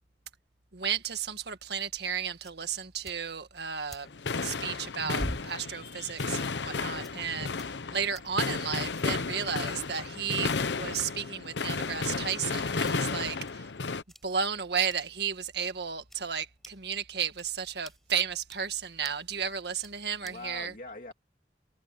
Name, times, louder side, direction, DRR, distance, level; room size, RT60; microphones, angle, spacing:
voice 1, 0.7-4.1 4.4-13.7 14.2-20.7, right 7 dB, 70° right, 1.8 m, -33 dB
sound 1, 1.4-20.6, equal, ahead, 5.1 m, -50 dB
sound 2, 4.1-14.0, left 4 dB, 85° left, 0.9 m, -33 dB
voice 2, 20.2-21.1, left 2 dB, 50° left, 2.8 m, -44 dB
head